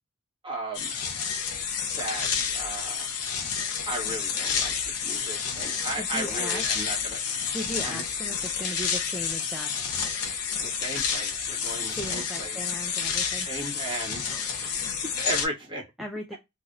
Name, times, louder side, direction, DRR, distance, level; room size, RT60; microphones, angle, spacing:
voice 1, 0.4-0.9 1.9-3.1 3.9-7.2 7.8-8.0 10.6-12.7 13.4-14.2 14.6-15.9, right 2 dB, 20° right, 1.3 m, -36 dB
sound 1, 0.7-15.5, left 6 dB, 90° left, 0.6 m, -30 dB
voice 2, 6.0-6.7 7.5-9.7 12.0-13.5 14.3-14.8 16.0-16.3, equal, ahead, 0.3 m, -37 dB
3.2 x 2.6 x 2.3 m
head